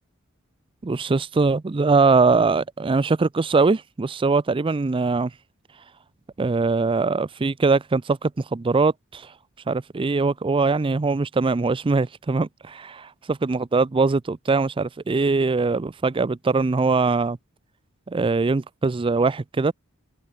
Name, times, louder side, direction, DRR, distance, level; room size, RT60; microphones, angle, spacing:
voice 1, 0.8-5.3 6.4-9.3 9.7-13.0 13.4-17.4 18.1-19.7, right 4 dB, 25° right, 0.4 m, -22 dB
head